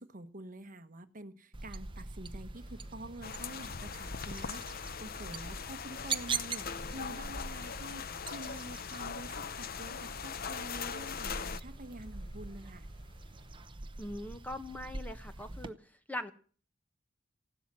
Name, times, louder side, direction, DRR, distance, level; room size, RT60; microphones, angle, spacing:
voice 1, 0.0-12.9, right 1 dB, 40° right, 1.2 m, -47 dB
sound 1, 1.5-15.7, right 4 dB, 25° right, 1.0 m, -43 dB
sound 2, 2.5-13.7, equal, 25° left, 4.8 m, -62 dB
sound 3, 3.2-11.6, left 6 dB, 45° left, 0.7 m, -41 dB
voice 2, 14.0-15.8 16.1-16.3, left 1 dB, 10° left, 1.3 m, -41 dB
15.5 x 12.0 x 7.5 m
head